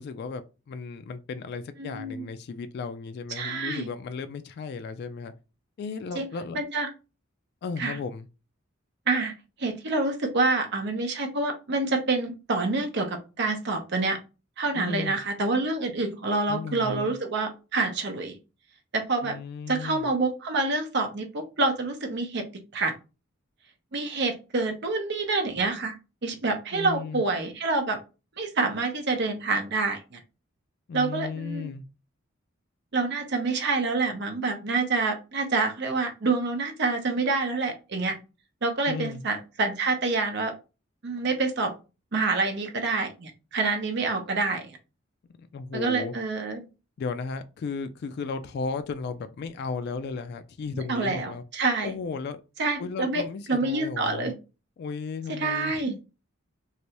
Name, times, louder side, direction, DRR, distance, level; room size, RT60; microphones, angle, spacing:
voice 1, 0.0-5.3 5.8-6.6 7.6-8.3 14.7-15.2 16.5-17.1 19.2-20.1 26.7-27.2 30.9-31.8 38.8-39.2 45.4-46.1 47.0-51.4 51.8-52.4 52.8-54.3 54.8-56.0, left 4 dB, 55° left, 0.3 m, -35 dB
voice 2, 1.8-2.3 3.3-3.9 6.1-6.2 6.5-6.9 7.8-8.0 9.1-9.3 9.6-14.2 14.6-18.4 18.9-19.4 19.7-22.4 22.7-22.9 23.9-26.0 26.2-28.0 28.4-30.2 30.9-31.7 32.9-38.2 38.6-40.5 41.0-41.7 42.1-44.8 45.7-46.6 50.7-51.9 52.6-53.2 53.5-54.3 55.3-55.9, right 3 dB, 60° right, 0.7 m, -27 dB
3.2 x 2.6 x 2.8 m
head